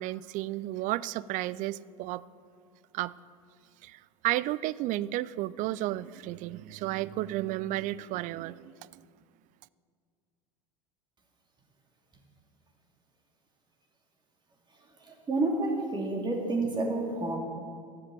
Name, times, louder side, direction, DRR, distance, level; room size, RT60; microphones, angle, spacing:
voice 1, 0.0-2.2 2.9-3.1 3.8-9.0, right 16 dB, 45° right, 19 dB, 0.4 m, -33 dB
voice 2, 15.0-17.4, right 2 dB, 25° right, 0 dB, 2.6 m, -29 dB
12.5 x 7.4 x 7.5 m, 2.2 s
hypercardioid pair, 85°, 19 cm